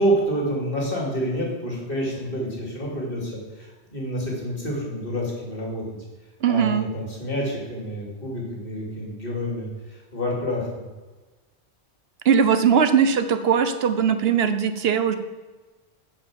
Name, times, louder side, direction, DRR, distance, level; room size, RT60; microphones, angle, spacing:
voice 1, 0.0-5.8 6.5-10.9, equal, 55° left, -2 dB, 2.8 m, -28 dB
voice 2, 6.4-6.8 12.2-15.1, right 7 dB, 70° right, 10 dB, 1.0 m, -20 dB
9.6 x 5.3 x 7.4 m, 1.2 s
omnidirectional pair, 1.1 m